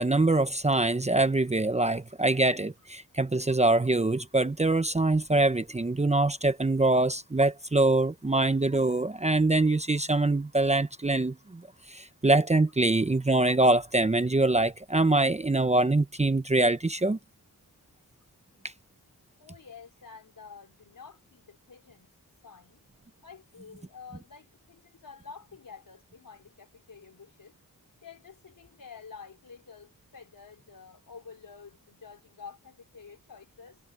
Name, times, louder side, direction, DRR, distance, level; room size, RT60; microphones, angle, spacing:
voice 1, 0.0-11.6 11.9-17.2, right 2 dB, 20° right, 0.9 m, -24 dB
voice 2, 19.4-22.1 22.4-22.8 23.2-27.5 28.0-33.8, left 5 dB, 65° left, 4.6 m, -49 dB
cardioid pair, 65°, 37 cm